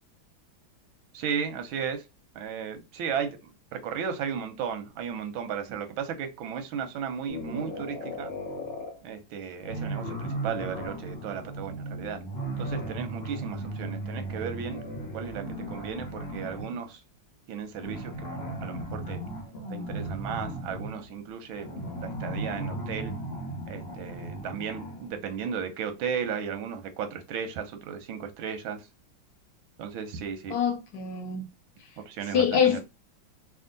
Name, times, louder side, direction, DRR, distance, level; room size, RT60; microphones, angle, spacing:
voice 1, 1.1-2.0 2.3-8.3 9.0-12.2 12.6-14.8 15.1-17.0 17.5-18.3 18.6-19.2 19.7-21.7 22.0-23.1 23.7-28.9 29.8-30.6 32.1-32.8, right 7 dB, 85° right, 1.5 m, -35 dB
sound 1, 7.3-9.0 9.6-16.8 17.7-25.2, right 1 dB, 45° left, 0.8 m, -36 dB
voice 2, 30.5-31.4 32.3-32.8, left 7 dB, 65° left, 1.1 m, -24 dB
3.5 x 2.5 x 3.8 m
omnidirectional pair, 2.1 m